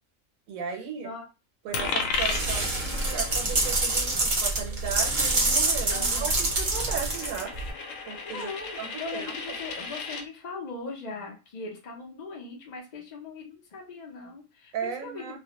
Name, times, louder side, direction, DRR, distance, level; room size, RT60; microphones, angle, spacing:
voice 1, 0.5-1.1 1.6-7.6 8.1-8.5 8.8-9.4 14.7-15.4, right 7 dB, 80° right, 3 dB, 1.0 m, -36 dB
Coin (dropping), 1.7-10.3, left 4 dB, 75° left, 1.0 m, -35 dB
sound 1, 2.1-7.7, right 2 dB, 45° right, 0.7 m, -26 dB
voice 2, 5.9-6.4 8.2-15.4, left 3 dB, 50° left, 0 dB, 0.5 m, -40 dB
2.4 x 2.1 x 2.7 m, 0.32 s
omnidirectional pair, 1.4 m